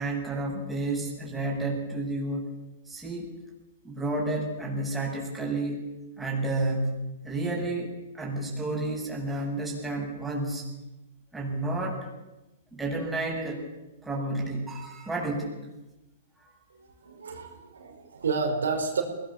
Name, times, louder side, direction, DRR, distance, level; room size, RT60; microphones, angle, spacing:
voice 1, 0.0-2.5 2.9-3.3 3.8-5.9 6.2-6.9 7.2-10.7 11.3-12.0 12.7-13.6 14.0-15.6, right 2 dB, 5° right, -2 dB, 7.5 m, -31 dB
voice 2, 16.7-19.0, right 4 dB, 80° right, 3 dB, 5.0 m, -30 dB
23.0 x 19.0 x 7.3 m, 1.0 s
hypercardioid pair, 125°, 0 cm